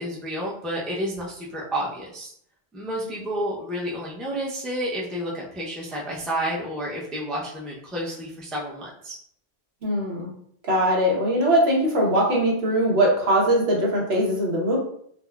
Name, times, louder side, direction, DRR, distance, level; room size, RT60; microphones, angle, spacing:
voice 1, 0.0-2.3 2.7-9.2, equal, ahead, -4 dB, 0.4 m, -30 dB
voice 2, 9.8-10.3 10.7-14.8, right 1 dB, 80° right, -2 dB, 1.1 m, -21 dB
3.9 x 2.1 x 2.2 m, 0.66 s
omnidirectional pair, 1.0 m